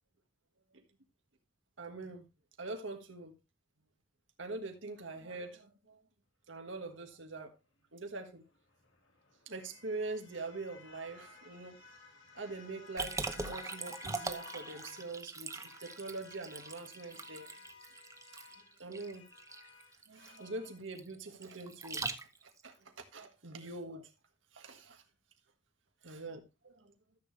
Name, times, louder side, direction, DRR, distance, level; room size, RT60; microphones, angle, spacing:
voice 1, 1.8-2.3 2.6-3.3 4.4-6.0 6.5-7.5 7.9-8.4 9.5-11.8 12.3-17.5 18.8-19.2 20.1-22.1 22.4-24.1 24.5-25.0 26.0-26.9, right 3 dB, 85° right, 1.6 m, -44 dB
sound 1, 8.5-15.2 15.5-20.8, left 4 dB, 90° left, 2.8 m, -55 dB
Liquid, 13.0-22.6, right 4 dB, 15° right, 0.8 m, -42 dB
13.5 x 6.9 x 3.2 m
head